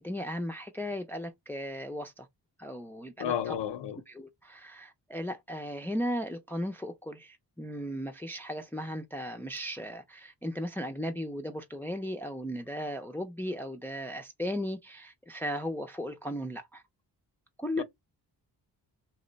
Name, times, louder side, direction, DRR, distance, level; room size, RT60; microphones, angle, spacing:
voice 1, 0.0-2.3 2.6-3.5 4.1-16.8 17.6-17.8, equal, 5° left, 0.5 m, -36 dB
voice 2, 3.2-4.0 17.8-17.9, left 9 dB, 75° left, 0.6 m, -32 dB
2.9 x 2.1 x 3.9 m
cardioid pair, 70°, 42 cm